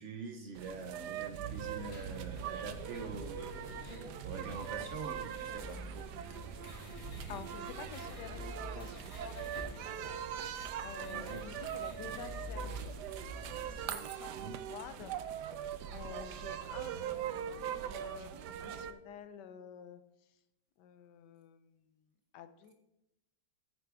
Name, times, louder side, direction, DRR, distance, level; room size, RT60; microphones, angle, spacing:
voice 1, 0.0-3.5 4.2-6.1 11.0-11.5 14.4-14.6, right 4 dB, 60° right, 5 dB, 0.8 m, -44 dB
sound 1, 0.6-18.9, right 10 dB, 80° right, 1.2 m, -42 dB
sound 2, 1.5-13.8, left 1 dB, 55° left, 2.8 m, -48 dB
voice 2, 7.3-10.2 10.8-12.8 13.6-15.2 15.9-20.0 20.8-21.9 22.3-22.7, left 8 dB, 80° left, 11 dB, 1.3 m, -50 dB
sound 3, 8.2-9.0 9.3-10.3 10.8-11.6 11.9-12.9, right 1 dB, 30° left, 2.6 m, -56 dB
9.3 x 8.3 x 3.5 m, 0.89 s
omnidirectional pair, 1.8 m